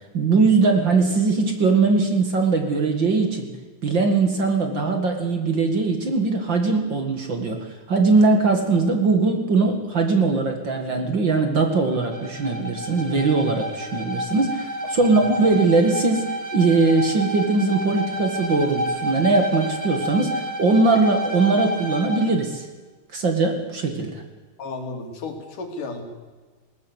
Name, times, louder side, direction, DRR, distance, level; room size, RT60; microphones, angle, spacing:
voice 1, 0.1-3.5 3.8-22.7 23.1-24.2, right 3 dB, 40° right, 5 dB, 2.3 m, -20 dB
Bowed string instrument, 11.9-22.4, equal, 15° right, 2.4 m, -30 dB
voice 2, 24.6-26.0, left 3 dB, 85° left, 4 dB, 4.2 m, -33 dB
20.5 x 18.5 x 8.1 m, 1.3 s
omnidirectional pair, 3.6 m